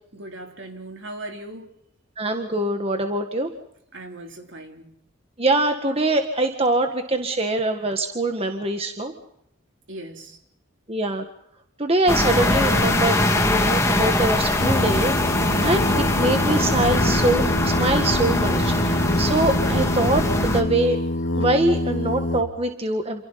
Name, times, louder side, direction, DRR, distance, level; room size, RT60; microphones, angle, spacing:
voice 1, 0.1-1.7 3.9-4.9 9.9-10.4, right 1 dB, 65° right, 3.6 m, -38 dB
voice 2, 2.2-3.5 5.4-9.1 10.9-11.2 11.8-21.0 21.3-23.2, right 2 dB, 30° right, 1.7 m, -23 dB
sound 1, 12.1-20.6, left 1 dB, 15° left, 2.3 m, -22 dB
Singing, 14.5-22.4, left 1 dB, 70° left, 2.3 m, -26 dB
28.0 x 28.0 x 4.2 m
head